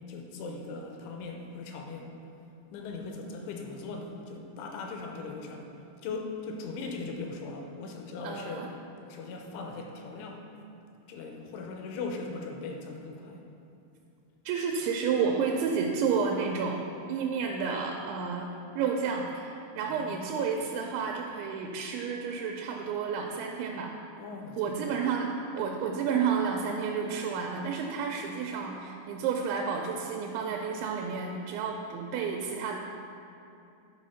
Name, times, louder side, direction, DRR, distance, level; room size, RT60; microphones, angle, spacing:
voice 1, 0.1-2.1 2.7-5.7 6.0-8.7 9.0-10.5 11.1-13.4 19.9-20.3 24.2-24.9, left 3 dB, 80° left, 2 dB, 3.0 m, -39 dB
voice 2, 8.2-8.7 14.5-18.5 18.8-23.9 24.6-32.8, right 6 dB, 85° right, 1 dB, 2.6 m, -31 dB
11.5 x 4.4 x 5.6 m, 2.6 s
omnidirectional pair, 5.7 m